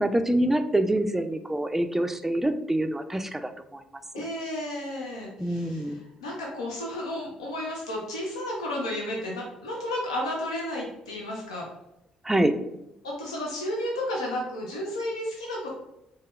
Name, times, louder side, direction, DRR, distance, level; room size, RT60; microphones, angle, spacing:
voice 1, 0.0-3.8 4.2-4.3 5.4-6.0 12.2-12.6, right 1 dB, 10° right, 9 dB, 0.3 m, -26 dB
voice 2, 4.1-11.7 13.0-15.8, left 1 dB, 90° left, -2 dB, 0.4 m, -32 dB
3.5 x 2.8 x 2.3 m, 0.87 s
hypercardioid pair, 45°, 3 cm